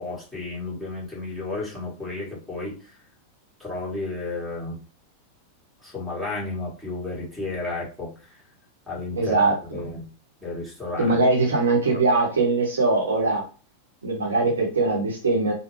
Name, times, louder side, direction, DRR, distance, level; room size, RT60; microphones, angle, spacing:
voice 1, 0.0-3.0 3.6-4.8 5.8-8.4 8.9-10.1 10.4-11.2, left 2 dB, 5° left, -7 dB, 1.6 m, -32 dB
voice 2, 9.2-9.5 11.0-13.4 14.0-15.5, right 3 dB, 70° right, 0 dB, 1.0 m, -21 dB
3.3 x 2.1 x 3.2 m, 0.35 s
figure-of-eight pair, 90°, 0 cm